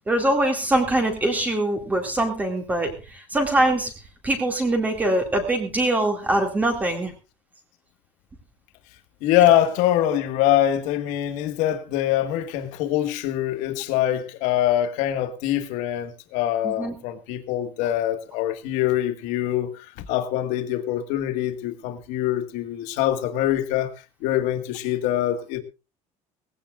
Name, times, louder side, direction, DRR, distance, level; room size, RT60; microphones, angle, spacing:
voice 1, 0.1-3.9 4.2-7.1 16.6-16.9, right 1 dB, 10° right, 2.3 m, -23 dB
voice 2, 9.2-23.9 24.2-25.6, left 12 dB, 75° left, 1.9 m, -24 dB
19.5 x 16.0 x 2.5 m
cardioid pair, 180°, 12 cm